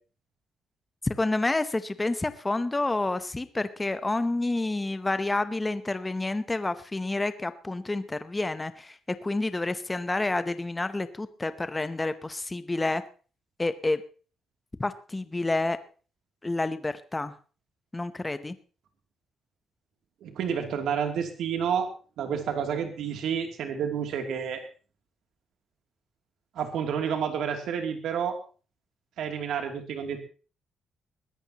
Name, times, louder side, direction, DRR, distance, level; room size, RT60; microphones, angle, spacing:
voice 1, 1.0-13.0 13.6-14.0 14.8-15.8 16.4-17.4 17.9-18.6, left 2 dB, 15° left, 12 dB, 0.7 m, -29 dB
voice 2, 20.2-24.6 26.5-28.4 29.2-30.2, right 7 dB, 80° right, 4 dB, 2.7 m, -30 dB
21.5 x 14.0 x 2.9 m, 0.37 s
cardioid pair, 165°, 0 cm